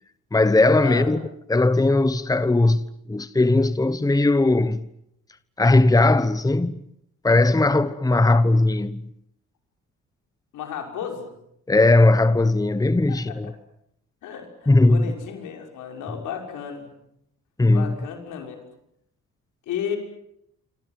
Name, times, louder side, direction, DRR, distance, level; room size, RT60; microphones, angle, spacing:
voice 1, 0.3-1.2 1.5-4.8 5.6-6.8 7.2-9.1 11.7-13.5 14.7-15.0 17.6-17.9, left 2 dB, 10° left, 1.1 m, -18 dB
voice 2, 10.5-11.3 13.1-13.4 14.2-16.9 17.7-18.6 19.7-20.0, left 8 dB, 85° left, 6.3 m, -33 dB
26.5 x 26.5 x 7.8 m
cardioid pair, 90°, 30 cm